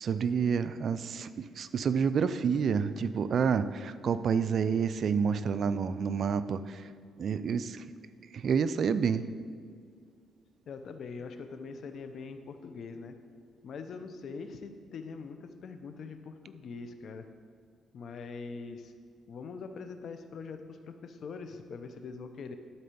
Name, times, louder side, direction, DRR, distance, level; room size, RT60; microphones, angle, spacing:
voice 1, 0.0-6.9 7.2-7.8 8.3-9.3, right 6 dB, 60° right, 13 dB, 0.4 m, -29 dB
voice 2, 10.7-13.1 13.6-17.2 17.9-18.9 19.3-22.5, left 4 dB, 60° left, 8 dB, 0.8 m, -43 dB
12.5 x 4.2 x 6.9 m, 2.2 s
cardioid pair, 90°, 0 cm